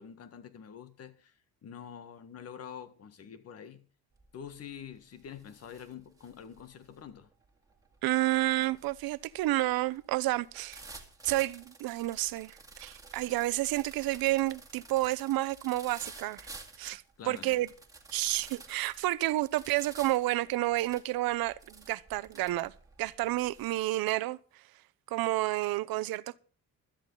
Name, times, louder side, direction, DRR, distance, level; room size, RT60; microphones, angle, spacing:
voice 1, 0.0-1.3 1.6-3.9 4.3-7.3 17.2-17.6, left 8 dB, 45° left, 1.6 m, -46 dB
sound 1, 4.1-4.5 4.9-23.8, right 3 dB, 10° right, 2.3 m, -52 dB
voice 2, 8.0-10.8 11.2-16.5 16.8-17.7 18.1-22.7 23.0-24.4 25.1-26.4, right 17 dB, 85° right, 0.9 m, -30 dB
16.5 x 13.0 x 3.9 m
cardioid pair, 160°, 35 cm